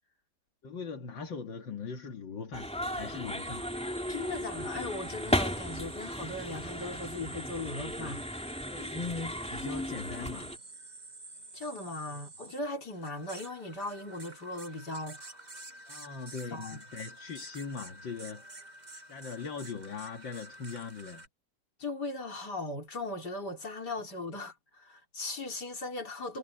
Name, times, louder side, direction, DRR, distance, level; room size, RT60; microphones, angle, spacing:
voice 1, 0.6-3.7 8.7-10.5 15.9-18.4 19.1-21.3, left 5 dB, 85° left, 2.7 m, -40 dB
sound 1, 2.5-10.6, equal, 5° left, 2.9 m, -35 dB
sound 2, 3.2-21.3, right 3 dB, 25° right, 1.4 m, -49 dB
voice 2, 4.1-8.3 11.5-15.5 16.5-16.8 21.8-26.4, left 2 dB, 60° left, 4.2 m, -38 dB
omnidirectional pair, 2.0 m